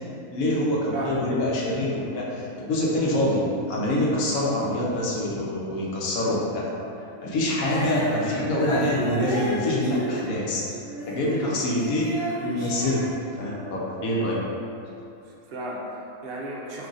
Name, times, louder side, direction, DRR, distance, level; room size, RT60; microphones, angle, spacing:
voice 1, 0.3-3.4 3.7-6.7 7.2-10.7 11.1-13.1 13.4-14.4, left 1 dB, 90° left, -5 dB, 1.1 m, -25 dB
voice 2, 0.9-1.3 15.2-16.9, right 1 dB, 65° right, -3 dB, 0.6 m, -34 dB
Female singing, 7.6-11.4 11.7-13.8, right 1 dB, 45° right, 1.1 m, -32 dB
2.8 x 2.4 x 3.8 m, 2.6 s
omnidirectional pair, 1.4 m